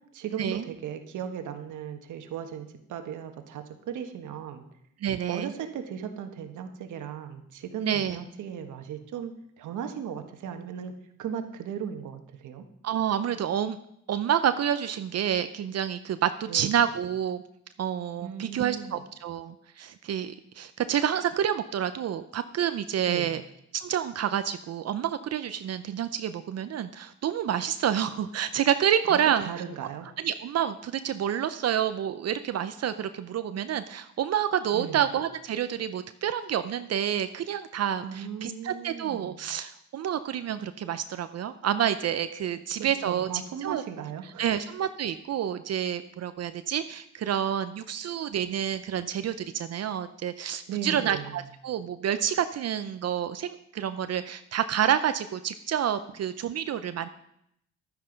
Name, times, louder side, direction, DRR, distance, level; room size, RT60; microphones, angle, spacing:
voice 1, 0.1-4.6 5.3-10.9 11.2-12.6 16.5-16.8 18.2-19.0 23.0-23.4 29.1-30.1 34.7-35.1 38.0-39.4 42.8-44.5 50.7-51.4, right 8 dB, 80° right, 7 dB, 1.4 m, -37 dB
voice 2, 5.0-5.5 7.8-8.2 12.8-13.8 14.1-17.4 17.8-23.4 23.7-29.5 30.2-43.3 43.6-43.8 44.4-57.1, right 9 dB, 55° right, 11 dB, 0.7 m, -28 dB
12.0 x 9.7 x 5.2 m, 0.75 s
cardioid pair, 90°, 30 cm